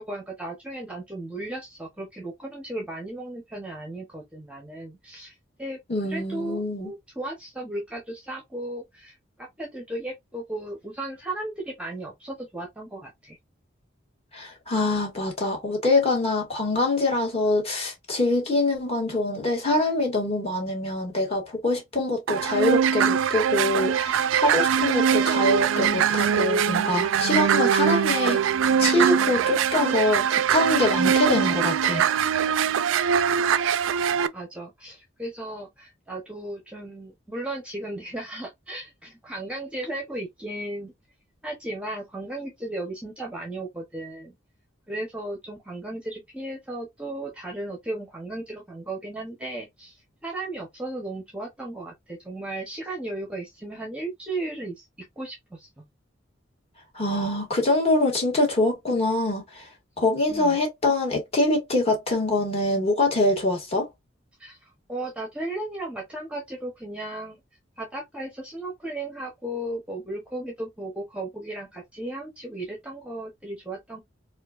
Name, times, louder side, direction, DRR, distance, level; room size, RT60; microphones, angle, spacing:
voice 1, 0.0-5.8 6.1-13.4 34.3-40.9 41.4-44.3 44.9-54.8 55.2-55.8 60.3-60.6 64.4-67.4 67.8-74.0, right 1 dB, 5° right, 0.7 m, -35 dB
voice 2, 5.9-6.9 14.3-28.4 28.8-32.1 56.9-59.6 60.0-63.8, left 2 dB, 30° left, 1.7 m, -24 dB
sound 1, 22.3-34.3, right 8 dB, 80° right, 0.3 m, -22 dB
4.3 x 2.4 x 2.3 m
head